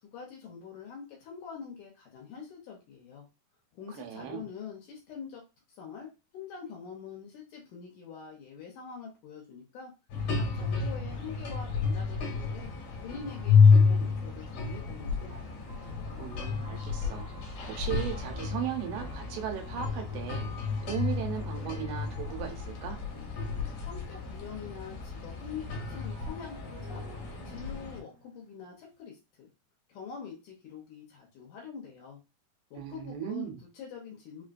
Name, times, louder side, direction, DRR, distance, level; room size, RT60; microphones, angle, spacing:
voice 1, 0.0-3.3 3.7-5.4 5.7-9.9 10.3-12.7 13.0-15.5 23.9-27.0 27.5-29.5 29.9-32.2 32.7-34.4, left 6 dB, 75° left, 0 dB, 2.0 m, -45 dB
voice 2, 3.9-4.5 16.2-17.3 17.8-20.5 20.9-23.0 32.8-33.6, right 10 dB, 90° right, 4 dB, 2.7 m, -37 dB
sound 1, 10.1-28.0, left 5 dB, 60° left, 2.0 m, -29 dB
sound 2, 14.4-14.5 15.3-24.8 25.0-29.0, right 2 dB, 45° right, 0.7 m, -54 dB
5.7 x 2.2 x 2.5 m, 0.28 s
omnidirectional pair, 4.3 m